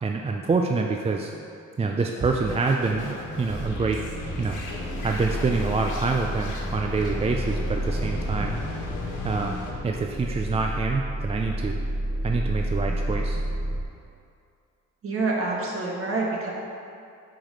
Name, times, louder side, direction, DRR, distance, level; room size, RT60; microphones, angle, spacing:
voice 1, 0.0-1.3 1.8-4.0 4.4-4.6 5.0-8.5 9.2-9.6 9.8-11.8 12.2-13.4, right 4 dB, 20° right, 2 dB, 0.4 m, -26 dB
sound 1, 2.2-9.7, left 2 dB, 85° left, 1.3 m, -36 dB
sound 2, 3.5-13.8, right 1 dB, 10° left, 1.4 m, -31 dB
voice 2, 12.9-13.3 15.0-16.5, right 3 dB, 45° right, -2 dB, 1.5 m, -29 dB
5.8 x 4.9 x 5.1 m, 2.5 s
cardioid pair, 90°, 30 cm